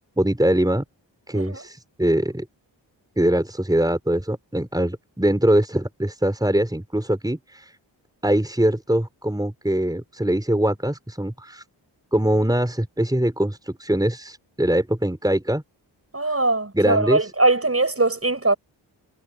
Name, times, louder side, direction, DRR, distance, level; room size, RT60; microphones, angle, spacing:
voice 1, 0.2-0.8 1.3-2.5 3.2-7.7 8.2-11.6 12.1-15.6 16.3-16.4 16.7-17.2, right 1 dB, 10° right, 4.5 m, -22 dB
voice 2, 16.1-18.5, right 2 dB, 30° right, 7.4 m, -21 dB
cardioid pair, 45°, 46 cm